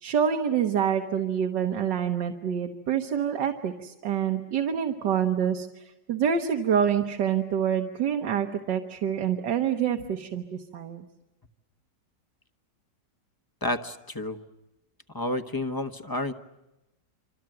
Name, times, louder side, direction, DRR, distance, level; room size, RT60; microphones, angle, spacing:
voice 1, 0.0-11.0, right 8 dB, 75° right, 4 dB, 1.9 m, -27 dB
voice 2, 13.6-14.4 15.1-16.3, left 2 dB, 15° left, 8 dB, 0.8 m, -30 dB
26.5 x 26.5 x 7.8 m, 0.98 s
omnidirectional pair, 1.9 m